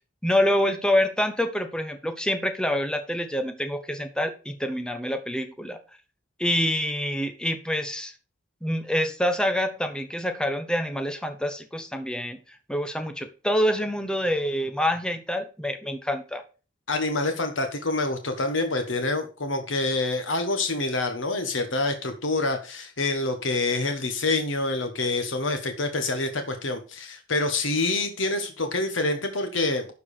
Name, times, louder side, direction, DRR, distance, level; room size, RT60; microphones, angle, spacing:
voice 1, 0.2-5.8 6.4-8.1 8.6-12.4 12.7-16.4, left 1 dB, 5° left, 8 dB, 1.1 m, -26 dB
voice 2, 16.9-29.9, left 2 dB, 90° left, 6 dB, 1.4 m, -27 dB
11.5 x 4.8 x 5.0 m, 0.34 s
head